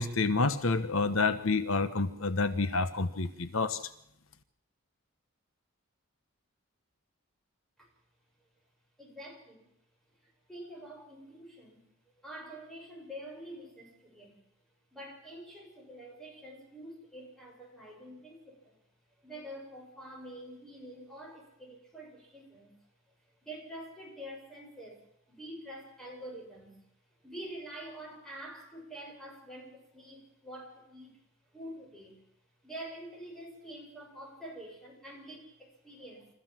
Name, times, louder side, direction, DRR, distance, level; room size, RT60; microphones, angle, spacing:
voice 1, 0.0-3.8, left 3 dB, 75° left, 12 dB, 1.2 m, -28 dB
voice 2, 9.0-9.6 10.5-11.8 12.2-14.4 14.9-18.8 19.2-22.7 23.4-25.0 25.3-26.8 27.2-31.2 31.5-32.2 32.6-36.3, right 1 dB, ahead, -1 dB, 7.3 m, -46 dB
27.5 x 14.5 x 7.6 m, 0.77 s
head